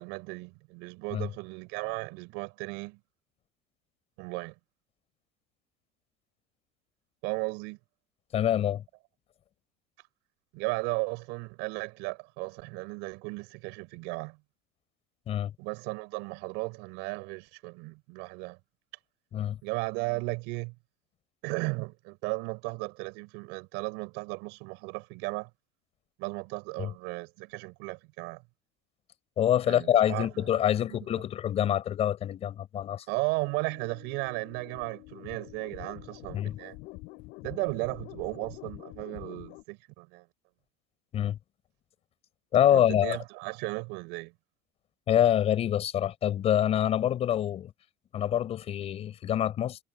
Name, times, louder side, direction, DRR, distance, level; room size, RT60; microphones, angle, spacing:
voice 1, 0.0-3.0 4.2-4.5 7.2-7.8 10.5-14.4 15.6-18.6 19.6-20.7 21.4-25.5 26.2-28.4 29.7-30.5 30.9-31.1 33.1-36.8 37.4-40.2 42.7-44.3, right 28 dB, 60° right, 7.1 m, -35 dB
voice 2, 8.3-8.8 15.3-15.5 19.3-19.6 26.8-26.9 29.4-33.1 36.3-36.6 41.1-41.4 42.5-43.2 45.1-47.7 48.1-49.8, left 10 dB, 30° left, 7.8 m, -26 dB
sound 1, 33.4-39.6, left 22 dB, 55° left, 7.3 m, -46 dB
cardioid pair, 175°, 20 cm